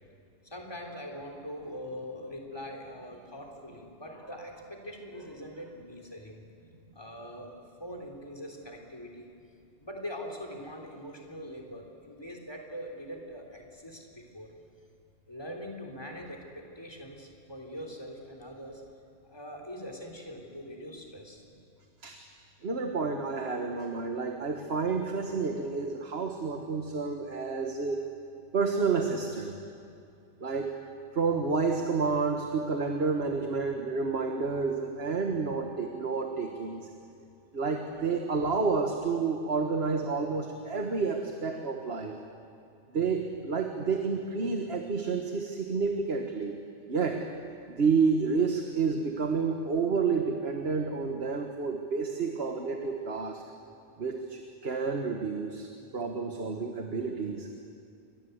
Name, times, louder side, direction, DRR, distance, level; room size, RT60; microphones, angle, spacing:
voice 1, 0.4-6.4 7.0-9.3 9.8-14.5 15.3-18.8 19.3-21.5, equal, 20° left, 0 dB, 3.6 m, -42 dB
voice 2, 22.6-28.0 28.5-29.5 30.4-30.7 31.1-36.9 37.5-42.2 42.9-46.6 46.9-47.3 47.7-53.4 54.0-55.7 55.9-57.6, right 4 dB, 60° right, 4 dB, 1.7 m, -30 dB
29.0 x 23.5 x 8.1 m, 2.5 s
omnidirectional pair, 1.2 m